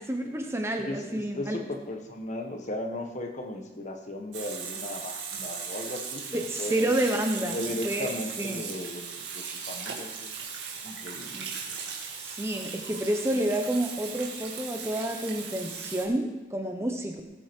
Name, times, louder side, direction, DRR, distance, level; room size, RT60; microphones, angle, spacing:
voice 1, 0.0-1.6 6.3-7.6 7.8-8.1 8.4-8.6 11.3-11.5 12.1-17.2, right 1 dB, 15° right, 3 dB, 1.1 m, -29 dB
voice 2, 0.8-6.9 7.5-10.3 10.8-11.4, left 1 dB, 35° left, 4 dB, 1.3 m, -36 dB
Water tap faucet / Sink (filling or washing), 4.3-16.0, right 6 dB, 65° right, 2.4 m, -38 dB
18.5 x 8.6 x 4.6 m, 1.1 s
head